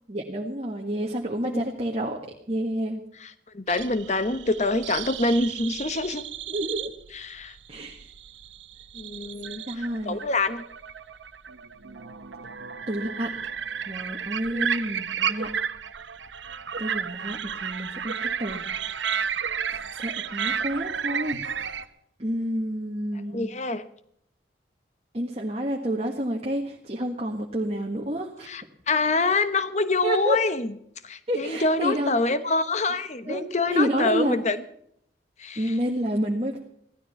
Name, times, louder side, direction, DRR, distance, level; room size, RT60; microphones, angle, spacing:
voice 1, 0.1-2.2 2.5-3.0 6.5-6.9 7.7-8.0 9.7-10.2 12.9-13.3 13.9-15.5 16.8-18.6 19.7-21.4 22.2-23.5 25.1-28.5 30.0-30.4 31.3-32.1 33.2-34.4 35.6-36.6, equal, 35° right, 0 dB, 1.6 m, -29 dB
voice 2, 3.2-6.3 7.1-7.5 8.9-10.6 14.5-14.7 23.3-23.8 28.5-30.7 31.0-34.6 35.4-35.7, left 3 dB, 40° left, 12 dB, 1.0 m, -26 dB
sound 1, 3.7-21.8, right 7 dB, 85° right, 1.0 m, -32 dB
16.0 x 13.0 x 5.8 m, 0.72 s
head